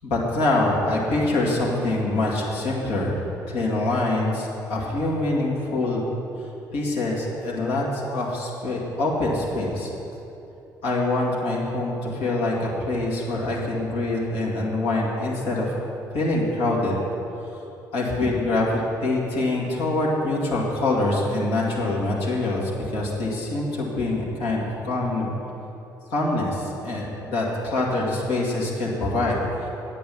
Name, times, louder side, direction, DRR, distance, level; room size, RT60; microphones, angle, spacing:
voice 1, 0.0-3.2 3.5-6.0 6.7-9.9 10.8-15.8 16.1-17.0 17.9-25.3 26.1-29.7, left 2 dB, 70° left, -4 dB, 2.1 m, -25 dB
8.7 x 8.4 x 5.9 m, 3.0 s
figure-of-eight pair, 50°, 10 cm